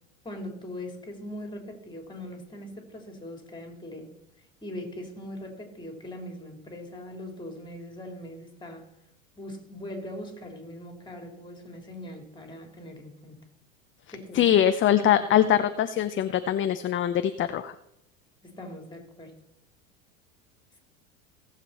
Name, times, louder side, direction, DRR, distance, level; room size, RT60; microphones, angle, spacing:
voice 1, 0.2-4.1 4.6-8.9 9.4-13.4 14.1-14.5 14.9-15.5 18.4-19.3, left 1 dB, 10° left, 3 dB, 3.7 m, -41 dB
voice 2, 14.3-17.7, left 10 dB, 30° left, 10 dB, 0.7 m, -23 dB
18.0 x 7.6 x 4.3 m, 0.82 s
hypercardioid pair, 85°, 41 cm